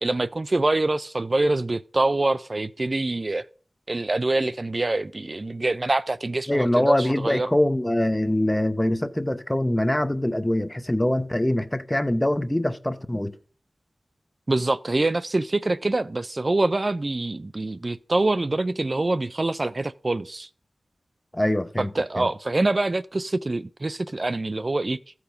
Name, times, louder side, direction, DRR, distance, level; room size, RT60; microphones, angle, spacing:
voice 1, 0.0-3.5 3.9-7.5 14.5-20.5 21.8-25.0, right 2 dB, 40° right, 0.4 m, -25 dB
voice 2, 6.5-13.4 21.3-22.3, left 1 dB, 15° left, 0.7 m, -23 dB
14.5 x 4.8 x 5.1 m
wide cardioid pair, 55°, 0 cm